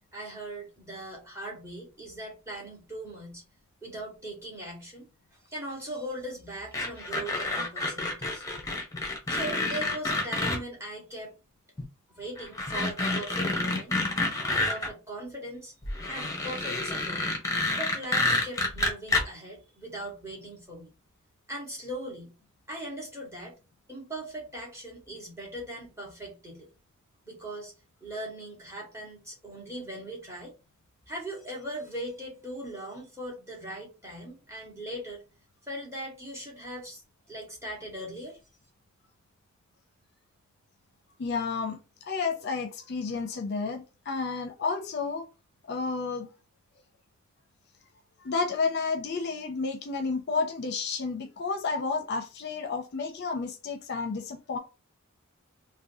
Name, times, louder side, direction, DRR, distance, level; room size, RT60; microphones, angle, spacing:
voice 1, 0.1-3.4 3.8-5.1 5.5-8.4 9.3-11.3 12.1-14.0 14.7-15.7 16.1-17.3 17.8-20.9 21.5-22.3 22.7-23.6 23.9-26.7 27.2-27.7 28.0-30.5 31.1-35.2 35.7-38.4, right 1 dB, 15° right, 1.2 m, -39 dB
sound 1, 6.7-10.6 11.8-11.9 12.4-14.9 15.8-19.2, left 2 dB, 15° left, 0.7 m, -29 dB
voice 2, 41.2-45.3 45.7-46.3 48.2-54.6, left 4 dB, 50° left, 0.5 m, -31 dB
3.6 x 2.2 x 2.6 m
head